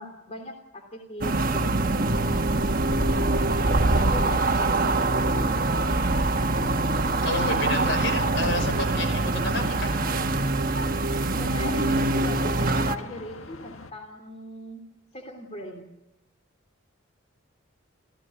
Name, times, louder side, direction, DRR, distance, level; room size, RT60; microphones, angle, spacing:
voice 1, 0.0-2.3 3.8-5.3 11.4-14.8 15.1-15.9, left 1 dB, 30° left, 4 dB, 3.1 m, -39 dB
sound 1, 1.2-13.0, right 2 dB, 40° right, 1.3 m, -24 dB
sound 2, 7.1-13.9, left 3 dB, 80° left, 1.8 m, -44 dB
voice 2, 7.2-10.3, left 2 dB, 55° left, 8 dB, 5.1 m, -30 dB
28.0 x 16.0 x 9.5 m, 0.93 s
head